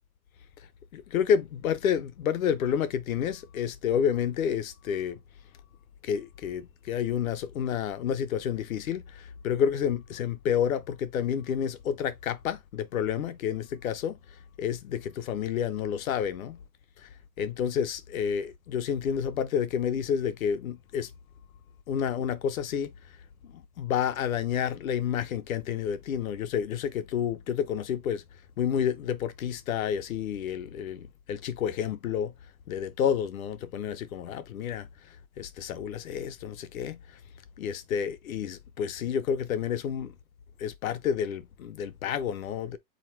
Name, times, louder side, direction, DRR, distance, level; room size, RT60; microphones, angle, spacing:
voice 1, 0.9-5.2 6.0-14.2 14.6-16.6 17.4-21.1 21.9-22.9 23.5-28.2 28.6-32.3 32.7-34.9 35.4-37.0 37.6-40.1 40.6-42.8, left 8 dB, 55° left, 0.7 m, -29 dB
3.9 x 2.9 x 4.3 m
supercardioid pair, 180°, 49 cm